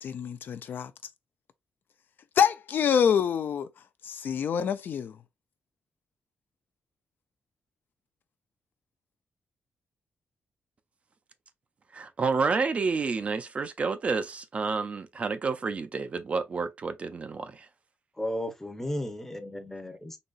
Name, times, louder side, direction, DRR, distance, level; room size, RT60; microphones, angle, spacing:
voice 1, 0.0-0.9 2.4-3.7 4.0-5.1, left 7 dB, 60° left, 0.3 m, -26 dB
voice 2, 11.9-17.7, right 4 dB, 35° right, 0.3 m, -29 dB
voice 3, 18.2-20.2, left 1 dB, 10° left, 0.7 m, -34 dB
3.9 x 2.8 x 2.3 m
wide cardioid pair, 155°, 4 cm